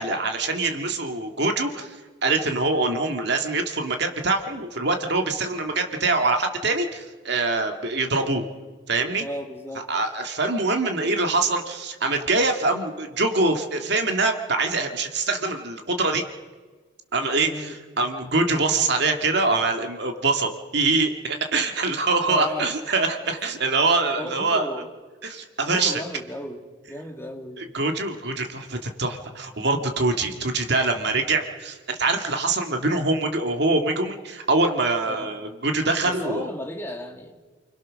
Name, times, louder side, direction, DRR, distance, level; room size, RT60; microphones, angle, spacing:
voice 1, 0.0-8.4 8.9-9.3 9.9-16.2 17.1-24.7 25.2-26.0 27.6-36.5, right 3 dB, 55° right, 4 dB, 2.1 m, -24 dB
voice 2, 9.2-9.9 17.4-17.8 22.3-22.7 24.2-24.9 25.7-27.6 35.1-35.3 36.1-37.3, equal, 10° left, 2 dB, 2.1 m, -34 dB
29.5 x 21.0 x 6.4 m, 1.4 s
head